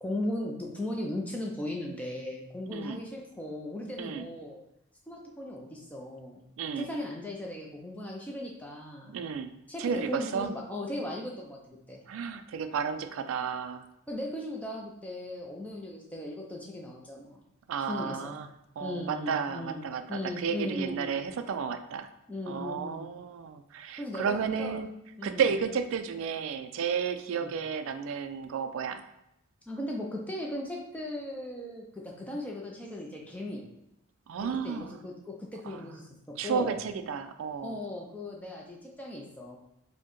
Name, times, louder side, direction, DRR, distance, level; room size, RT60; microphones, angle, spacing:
voice 1, 0.0-4.6 5.1-6.4 6.8-9.2 9.7-12.0 14.1-17.4 17.9-18.4 18.8-19.8 20.1-21.2 22.3-23.1 24.0-24.8 25.2-25.4 27.3-27.5 29.7-33.6 34.4-36.8 37.6-39.6, left 1 dB, 5° left, -1 dB, 0.4 m, -37 dB
voice 2, 6.6-6.9 9.1-9.5 9.8-10.5 12.1-13.9 17.7-18.5 18.8-22.1 22.5-24.9 25.2-29.0 34.3-35.0 35.7-35.8 36.4-37.8, right 6 dB, 70° right, 9 dB, 0.3 m, -32 dB
4.4 x 2.1 x 3.0 m, 0.83 s
head